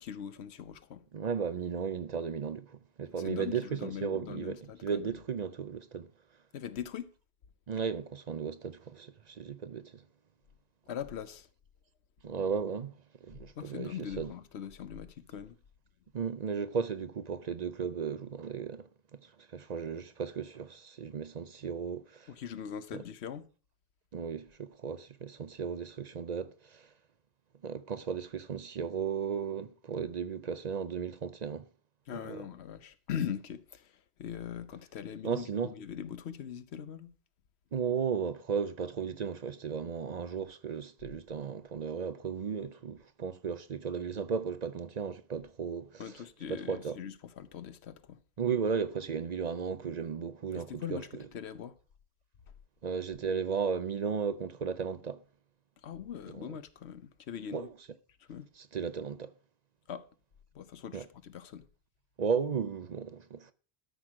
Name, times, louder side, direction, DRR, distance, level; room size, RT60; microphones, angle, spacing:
voice 1, 0.0-1.1 3.2-5.1 6.5-7.1 10.9-11.5 13.5-15.6 22.3-23.5 32.1-37.1 46.0-48.2 50.5-51.8 55.8-57.7 58.2-58.5 59.9-60.1 60.5-61.7, left 8 dB, 75° left, 1.0 m, -41 dB
voice 2, 1.1-6.1 7.7-10.0 12.2-14.3 16.1-22.3 22.9-23.0 24.1-26.9 27.6-31.7 32.2-32.4 35.2-35.7 37.7-46.0 46.5-47.0 48.4-51.2 52.8-55.2 56.3-56.5 57.5-57.7 58.7-59.3 60.9-61.0 62.2-63.5, right 6 dB, 50° right, 0.6 m, -35 dB
13.0 x 6.2 x 4.9 m
omnidirectional pair, 1.1 m